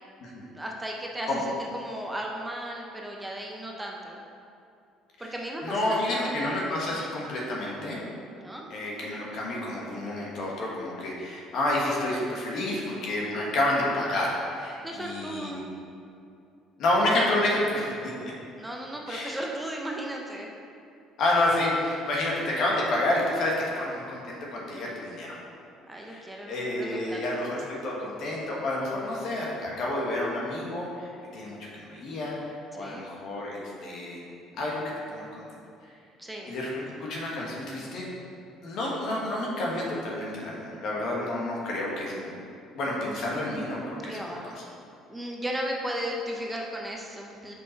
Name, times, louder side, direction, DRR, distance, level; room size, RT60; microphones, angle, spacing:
voice 1, 0.5-1.3 1.7-4.2 5.3-6.6 6.9-7.1 8.3-8.6 14.8-15.6 18.6-20.5 25.9-27.4 32.8-33.1 36.2-36.5 44.1-44.5 45.1-47.5, right 1 dB, 10° right, -1 dB, 0.6 m, -35 dB
voice 2, 5.6-8.0 8.7-15.6 16.8-17.9 18.2-18.3 19.1-19.3 21.2-25.3 25.9-34.2 34.5-34.8 35.1-35.4 36.5-36.8 37.1-38.0 38.6-42.3 42.7-44.5, left 1 dB, 60° left, -3 dB, 1.5 m, -29 dB
5.7 x 5.0 x 4.5 m, 2.6 s
cardioid pair, 120°, 0 cm